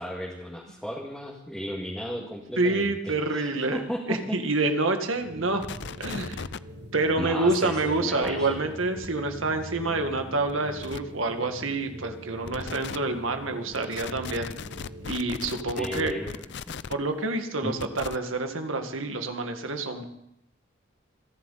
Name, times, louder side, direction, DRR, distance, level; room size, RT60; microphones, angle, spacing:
voice 1, 0.0-4.7 7.2-8.7 15.8-16.8 17.6-17.7, equal, ahead, -4 dB, 2.0 m, -35 dB
voice 2, 2.6-5.6 6.0-6.4 6.9-14.5 15.0-16.1 16.9-20.0, right 2 dB, 80° right, 6 dB, 1.8 m, -27 dB
sound 1, 5.0-15.3, equal, 55° right, 2.1 m, -43 dB
sound 2, 5.6-6.6 8.0-8.3 9.0-9.1 10.5-10.6 10.8-11.0 12.5-13.0 13.7-16.9 17.8-18.2, left 6 dB, 60° left, 0.5 m, -38 dB
27.5 x 11.0 x 4.1 m, 0.79 s
head